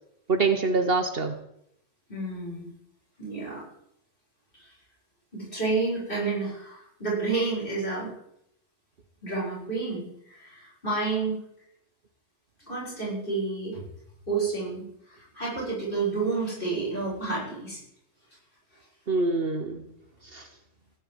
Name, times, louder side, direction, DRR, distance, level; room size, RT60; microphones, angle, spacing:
voice 1, 0.3-1.4 19.1-19.9 20.3-20.5, right 3 dB, 50° right, 8 dB, 1.3 m, -25 dB
voice 2, 2.1-2.7 3.2-3.6 4.6-4.7 5.3-8.1 9.2-11.4 12.6-13.8 14.3-14.8 15.1-17.8, right 3 dB, 45° left, -5 dB, 8.0 m, -30 dB
17.0 x 6.7 x 9.3 m, 0.76 s
omnidirectional pair, 1.3 m